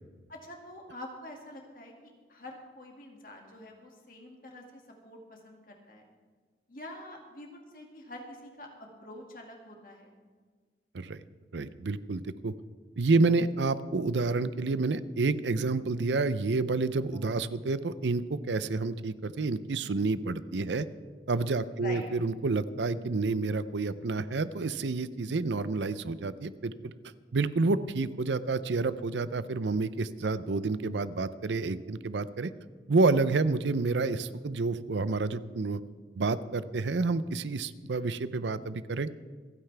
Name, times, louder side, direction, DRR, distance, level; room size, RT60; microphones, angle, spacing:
voice 1, 0.3-6.1 6.7-10.2 17.1-17.2 21.7-22.1, left 1 dB, 50° left, 1 dB, 2.2 m, -46 dB
voice 2, 11.5-12.5 13.0-20.8 21.3-26.9 27.3-32.5 32.9-35.8 36.2-39.1, right 3 dB, 80° right, 14 dB, 0.6 m, -29 dB
27.5 x 9.4 x 3.4 m, 1.5 s
head